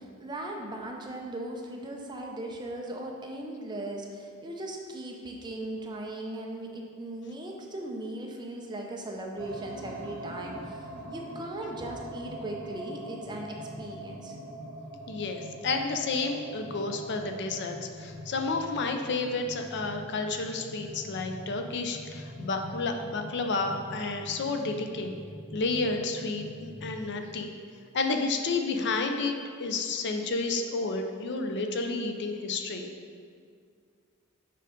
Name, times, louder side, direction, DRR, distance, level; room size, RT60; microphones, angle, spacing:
voice 1, 0.0-14.4, right 1 dB, 20° right, 0 dB, 0.6 m, -38 dB
sound 1, 9.4-27.0, equal, 35° right, 1.6 m, -43 dB
voice 2, 15.1-25.1 25.5-27.5 27.9-32.9, left 3 dB, 55° left, 5 dB, 0.5 m, -31 dB
6.7 x 3.8 x 5.1 m, 2.1 s
head